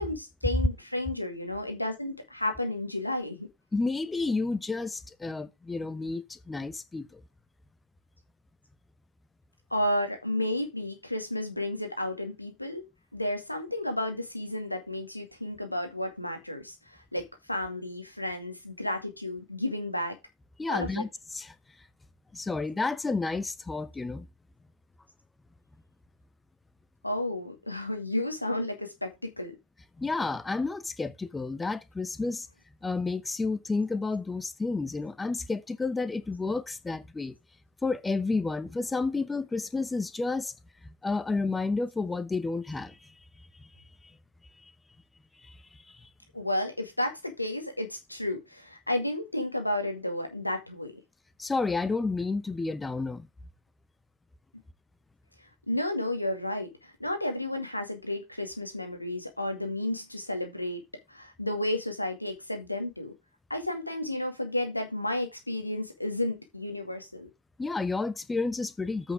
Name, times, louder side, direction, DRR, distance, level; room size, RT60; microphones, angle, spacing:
voice 1, 0.0-3.5 9.7-12.8 13.1-20.2 20.7-21.0 27.0-29.5 46.3-50.9 55.7-60.8 61.1-63.1 63.5-67.3, left 1 dB, 85° left, 2.2 m, -32 dB
voice 2, 3.7-7.2 20.6-21.5 22.3-24.3 30.0-32.5 32.8-37.4 37.8-40.5 41.0-43.0 45.4-45.6 46.0-46.1 51.4-53.3 67.6-69.1, left 3 dB, 10° left, 0.9 m, -31 dB
8.2 x 6.0 x 5.0 m
figure-of-eight pair, 90°, 0 cm